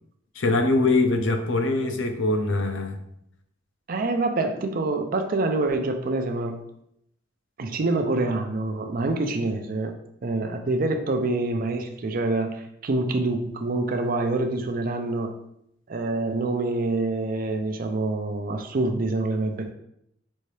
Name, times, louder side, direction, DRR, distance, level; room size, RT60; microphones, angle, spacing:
voice 1, 0.4-3.0, left 2 dB, 70° left, 5 dB, 0.6 m, -23 dB
voice 2, 3.9-6.6 7.6-9.9 10.2-15.4 15.9-19.7, right 2 dB, 45° right, 6 dB, 0.4 m, -26 dB
5.4 x 2.7 x 3.2 m, 0.76 s
head